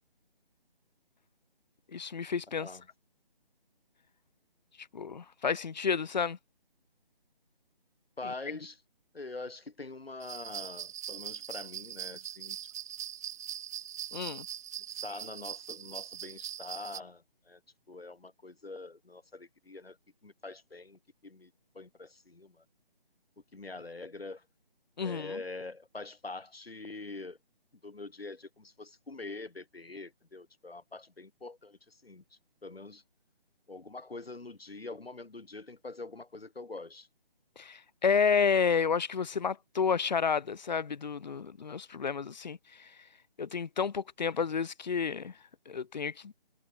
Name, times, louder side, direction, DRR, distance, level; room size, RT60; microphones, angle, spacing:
voice 1, 1.9-2.7 4.9-6.4 8.2-8.3 14.1-14.5 25.0-25.4 37.6-42.9 43.4-45.3 45.7-46.3, left 6 dB, 50° left, 1.3 m, -30 dB
voice 2, 8.2-8.8 9.1-12.6 14.9-17.6 17.9-20.0 20.2-22.6 23.5-24.4 25.0-27.4 27.8-32.2 32.6-33.0 33.7-37.1, left 3 dB, 85° left, 3.1 m, -44 dB
sound 1, 10.2-17.0, right 10 dB, 20° right, 1.0 m, -41 dB
figure-of-eight pair, 155°, 29 cm